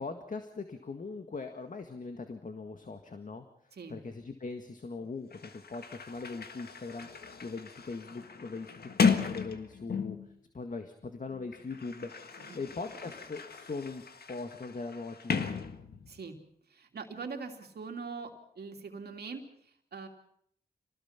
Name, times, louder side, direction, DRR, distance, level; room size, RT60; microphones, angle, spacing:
voice 1, 0.0-3.5 3.9-7.1 7.4-10.2 10.5-12.1 12.5-14.0 14.3-15.6, left 4 dB, 50° left, 6 dB, 1.8 m, -40 dB
Sliding door, 5.0-5.1 5.3-10.4 11.3-16.3, left 5 dB, 70° left, 1.7 m, -35 dB
voice 2, 16.7-20.1, right 4 dB, 80° right, 4 dB, 2.9 m, -42 dB
26.0 x 19.0 x 5.9 m, 0.66 s
cardioid pair, 60°, 17 cm